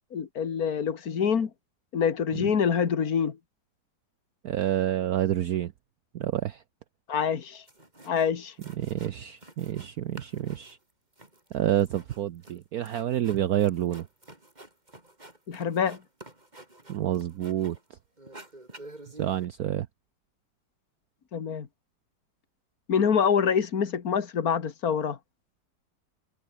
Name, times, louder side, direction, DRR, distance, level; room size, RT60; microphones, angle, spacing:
voice 1, 0.1-1.5 1.9-3.4 7.1-7.6 8.1-8.5 15.5-16.0 21.3-21.7 22.9-25.2, left 7 dB, 55° left, 2.2 m, -26 dB
voice 2, 4.4-5.7 6.1-6.6 8.8-10.8 11.5-14.1 16.9-17.8 19.2-19.9, right 11 dB, 60° right, 1.1 m, -28 dB
sound 1, 7.4-7.5 7.7-8.3 8.6-9.9 10.1-17.9 18.2-19.4, right 2 dB, 20° right, 4.1 m, -49 dB
omnidirectional pair, 2.0 m